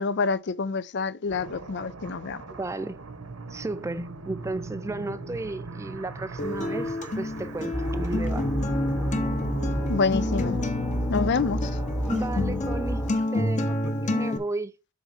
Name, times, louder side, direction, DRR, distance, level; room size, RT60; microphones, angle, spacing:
voice 1, 0.0-2.4 9.9-10.6 11.1-11.7, left 4 dB, 50° left, 0.5 m, -27 dB
sound 1, 1.3-10.6, right 3 dB, 70° right, 1.1 m, -40 dB
voice 2, 2.5-3.0 3.5-8.5 12.1-13.0 13.3-14.7, right 2 dB, 15° right, 0.3 m, -34 dB
Acoustic guitar, 6.4-14.4, left 1 dB, 35° left, 1.0 m, -29 dB
sound 2, 7.7-13.1, equal, 5° left, 1.0 m, -30 dB
7.4 x 3.5 x 5.6 m
head